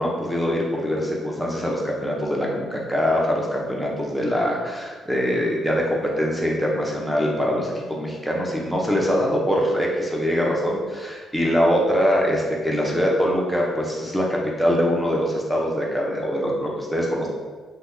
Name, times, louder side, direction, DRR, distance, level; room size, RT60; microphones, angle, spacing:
voice 1, 0.0-17.3, equal, ahead, -3 dB, 0.7 m, -23 dB
2.9 x 2.2 x 3.5 m, 1.4 s
cardioid pair, 90°, 0 cm